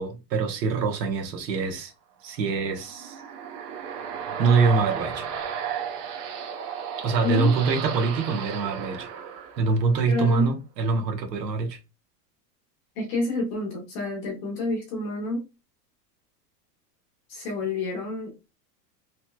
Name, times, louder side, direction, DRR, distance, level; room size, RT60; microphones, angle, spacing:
voice 1, 0.0-1.9 2.2-3.2 4.4-5.3 7.0-9.1 9.6-11.8, right 4 dB, 85° right, 1.1 m, -24 dB
sound 1, 2.5-10.1, right 7 dB, 70° right, 0.8 m, -34 dB
voice 2, 7.2-7.5 10.1-10.5 13.0-15.4 17.3-18.3, left 2 dB, 20° left, 0.6 m, -28 dB
3.1 x 2.8 x 2.2 m
supercardioid pair, 175°, 48 cm